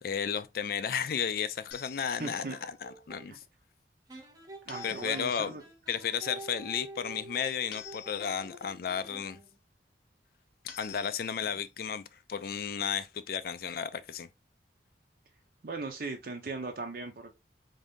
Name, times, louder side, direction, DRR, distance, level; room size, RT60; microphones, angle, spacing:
voice 1, 0.0-3.4 4.8-5.5 5.9-9.4 10.8-14.3, left 7 dB, 55° left, 0.4 m, -33 dB
sound 1, 1.7-2.6 4.7-5.5 7.7-8.6 10.7-11.6, left 9 dB, 90° left, 0.8 m, -49 dB
sound 2, 1.9-3.3 4.1-9.6, right 2 dB, 20° right, 0.7 m, -48 dB
voice 2, 2.2-2.6 3.3-3.4 4.7-5.6 15.6-17.3, right 3 dB, 55° right, 0.6 m, -38 dB
3.8 x 2.7 x 3.4 m
head